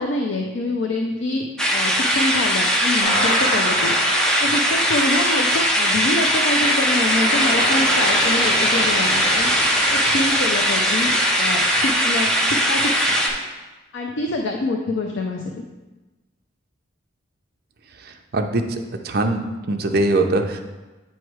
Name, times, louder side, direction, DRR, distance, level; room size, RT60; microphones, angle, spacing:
voice 1, 0.0-4.0 4.4-9.5 9.9-11.1 11.4-13.1 13.9-15.5, left 2 dB, 60° left, 2 dB, 0.5 m, -26 dB
sound 1, 1.6-13.3, equal, 5° left, 0.6 m, -20 dB
sound 2, 3.0-13.3, equal, 30° left, 2.2 m, -27 dB
voice 2, 18.3-19.4 19.7-20.6, right 2 dB, 50° right, 5 dB, 0.6 m, -21 dB
8.8 x 3.2 x 4.6 m, 1.2 s
head